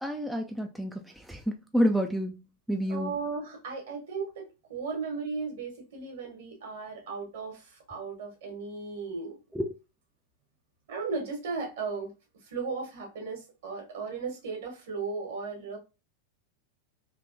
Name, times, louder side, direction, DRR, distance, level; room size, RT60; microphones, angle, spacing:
voice 1, 0.0-2.4 2.7-3.2 9.5-9.7, equal, ahead, 0.3 m, -29 dB
voice 2, 2.9-9.4 10.9-12.1 12.4-15.8, right 4 dB, 60° right, 1.5 m, -36 dB
3.3 x 2.9 x 2.6 m
figure-of-eight pair, 90°, 0 cm